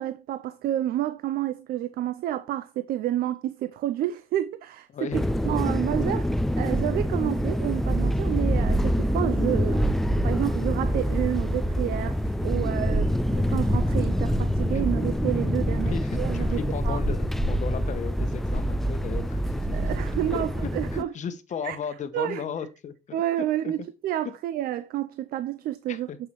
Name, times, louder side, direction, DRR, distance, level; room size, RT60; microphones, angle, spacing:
voice 1, 0.0-5.1 5.4-6.3 6.6-9.9 10.2-17.0 19.7-21.1 21.6-21.8 22.1-22.4 23.1-26.1, right 12 dB, 65° right, 0.5 m, -29 dB
voice 2, 4.9-5.3 12.9-13.0 15.9-19.9 20.3-20.4 20.9-23.7 24.2-24.3 25.9-26.2, left 7 dB, 45° left, 1.0 m, -36 dB
sound 1, 5.1-21.0, equal, ahead, 0.3 m, -25 dB
7.3 x 5.6 x 3.1 m
cardioid pair, 110°, 17 cm